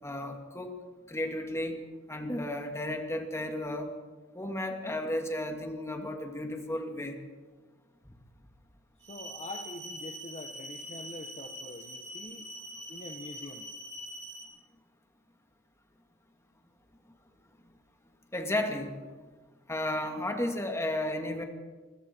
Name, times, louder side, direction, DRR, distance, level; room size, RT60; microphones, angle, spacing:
voice 1, 0.0-0.8 1.1-1.8 2.1-3.9 4.3-7.2 18.3-19.0 19.7-21.4, left 1 dB, 15° left, 3 dB, 2.3 m, -33 dB
voice 2, 9.0-12.5 12.9-13.7, left 2 dB, 35° left, 4 dB, 1.3 m, -45 dB
sound 1, 9.0-14.4, equal, 55° right, 5.6 m, -43 dB
27.0 x 22.0 x 4.6 m, 1.4 s
head